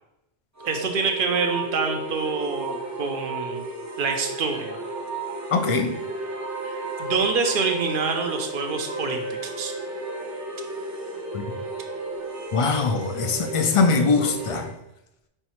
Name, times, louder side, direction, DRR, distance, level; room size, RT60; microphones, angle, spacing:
sound 1, 0.6-14.7, right 2 dB, 20° right, 0.5 m, -33 dB
voice 1, 0.6-4.8 6.6-9.7, right 4 dB, 60° right, 5 dB, 0.7 m, -27 dB
voice 2, 5.5-5.9 11.3-11.4 12.5-14.7, left 4 dB, 55° left, 6 dB, 0.3 m, -22 dB
5.5 x 3.1 x 3.0 m, 0.87 s
omnidirectional pair, 1.1 m